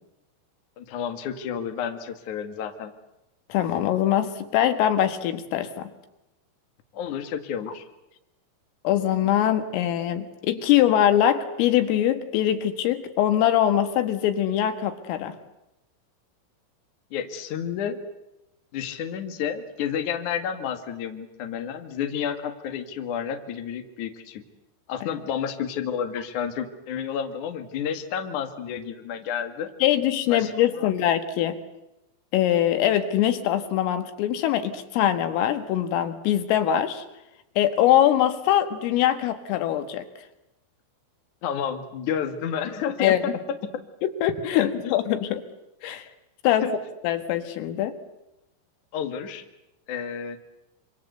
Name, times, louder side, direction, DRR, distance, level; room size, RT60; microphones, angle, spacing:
voice 1, 0.8-2.9 6.9-7.8 17.1-18.0 18.7-24.4 24.9-29.7 30.3-30.9 41.4-43.1 44.6-44.9 46.6-46.7 48.9-49.4 49.9-50.4, left 8 dB, 50° left, 6 dB, 2.7 m, -30 dB
voice 2, 3.5-5.9 8.8-15.4 25.0-25.1 29.8-31.6 32.3-37.0 37.6-40.1 43.0-43.4 44.0-45.4 45.8-46.1 46.4-46.7 47.0-48.0, left 11 dB, 85° left, 9 dB, 4.3 m, -23 dB
27.0 x 25.5 x 8.1 m, 0.89 s
omnidirectional pair, 5.7 m